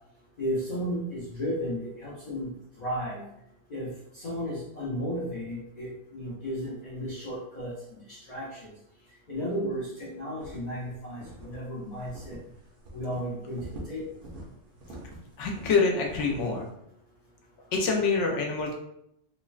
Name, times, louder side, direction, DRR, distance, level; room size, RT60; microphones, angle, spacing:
voice 1, 0.4-3.3 3.7-7.7 8.1-8.7 9.3-12.4 12.9-14.1, equal, 50° left, -7 dB, 0.5 m, -34 dB
sound 1, 10.4-10.8 11.2-11.6 12.1-12.5 12.8-13.2 13.5-14.5 14.8-16.6, right 1 dB, 60° right, 0.7 m, -44 dB
voice 2, 15.4-16.7 17.7-18.7, left 4 dB, 70° left, 0 dB, 0.9 m, -26 dB
3.1 x 2.0 x 2.4 m, 0.78 s
omnidirectional pair, 1.4 m